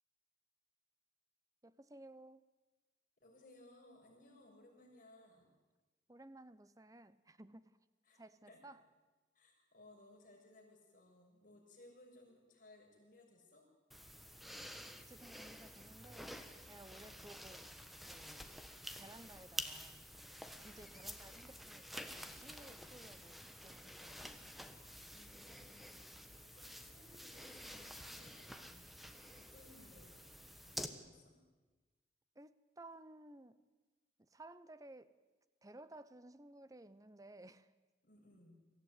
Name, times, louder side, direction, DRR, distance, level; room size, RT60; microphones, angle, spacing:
voice 1, 1.6-2.4 6.1-7.8 8.1-8.8 14.5-16.4 16.7-17.7 18.1-18.6 19.0-20.1 20.6-24.5 32.3-33.6 34.2-35.1 35.6-37.7, right 2 dB, 20° right, 0.8 m, -57 dB
voice 2, 3.2-5.5 8.1-8.6 9.3-13.7 17.0-17.4 25.1-26.1 26.4-28.9 29.4-30.3 30.6-31.4 38.0-38.6, left 2 dB, 50° left, 6.6 m, -63 dB
sound 1, 13.9-30.9, equal, ahead, 1.3 m, -50 dB
24.0 x 15.0 x 9.7 m
head